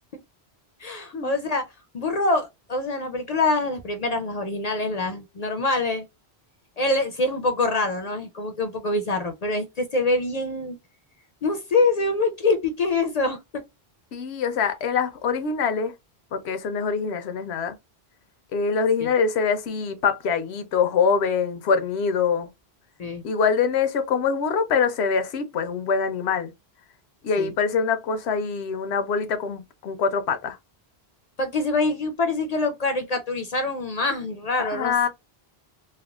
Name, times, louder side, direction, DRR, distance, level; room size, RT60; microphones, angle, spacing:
voice 1, 0.8-1.7 1.9-6.0 6.8-10.8 11.4-13.6 19.0-19.1 23.0-23.2 27.4-27.5 31.4-35.1, left 3 dB, 50° left, 0.5 m, -25 dB
voice 2, 14.1-15.9 16.3-17.7 18.5-22.5 23.2-26.5 27.2-30.6 34.6-35.1, left 5 dB, 90° left, 0.9 m, -24 dB
3.4 x 2.1 x 2.3 m
omnidirectional pair, 1.1 m